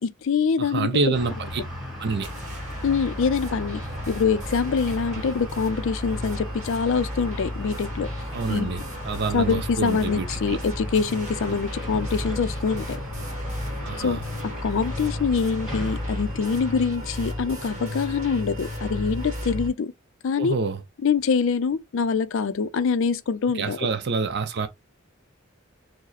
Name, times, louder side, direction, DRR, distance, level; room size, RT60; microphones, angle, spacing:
voice 1, 0.0-0.9 2.8-8.1 8.5-8.8 9.3-13.0 14.0-14.2 14.6-19.9 20.2-20.5 21.0-23.8, left 5 dB, 65° left, 0.4 m, -25 dB
voice 2, 0.6-1.6 2.0-2.3 8.3-10.6 11.5-11.6 13.8-14.2 20.4-20.8 23.5-24.7, right 4 dB, 55° right, 0.5 m, -27 dB
sound 1, 1.1-16.9, equal, ahead, 1.7 m, -39 dB
sound 2, 2.2-19.7, left 1 dB, 35° right, 1.4 m, -33 dB
4.8 x 2.0 x 4.0 m
head